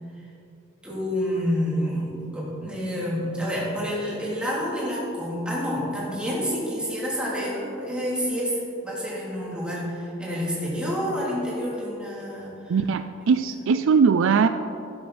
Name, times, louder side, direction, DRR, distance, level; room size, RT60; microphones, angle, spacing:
voice 1, 0.8-12.7, equal, 5° right, -7 dB, 3.2 m, -28 dB
voice 2, 12.7-14.5, right 5 dB, 60° right, 10 dB, 0.4 m, -20 dB
12.0 x 11.5 x 4.3 m, 2.8 s
head